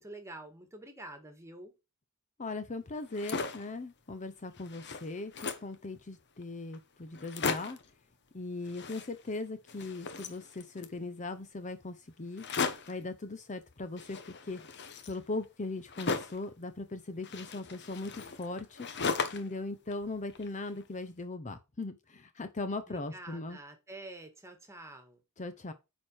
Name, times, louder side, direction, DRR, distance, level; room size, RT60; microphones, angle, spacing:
voice 1, 0.0-1.8 22.9-25.2, right 2 dB, 15° right, 1.9 m, -47 dB
voice 2, 2.4-7.8 8.3-12.4 12.9-14.6 15.1-18.9 19.3-23.6 25.4-25.7, left 2 dB, 35° left, 0.7 m, -39 dB
sound 1, 3.0-3.7 4.2-4.3 4.5-5.8 6.4-6.5 6.7-6.8 7.1-7.9 8.6-9.4 9.7-11.0 12.4-13.0 14.0-16.5 17.2-19.6 19.9-20.8, left 4 dB, 50° left, 1.1 m, -37 dB
9.3 x 4.4 x 4.6 m
head